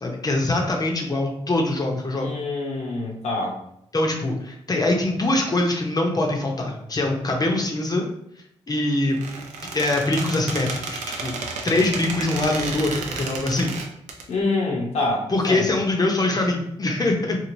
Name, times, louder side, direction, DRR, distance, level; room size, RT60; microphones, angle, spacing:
voice 1, 0.0-2.3 3.9-8.1 8.7-9.5 9.7-11.3 11.6-13.7 15.3-17.4, left 2 dB, 35° left, 1 dB, 0.6 m, -23 dB
voice 2, 2.2-3.6 14.3-15.7, left 2 dB, 70° left, -2 dB, 0.7 m, -26 dB
Squeak, 9.1-14.2, right 4 dB, 85° right, 0.4 m, -32 dB
3.1 x 2.4 x 2.5 m, 0.73 s
supercardioid pair, 60°, 12 cm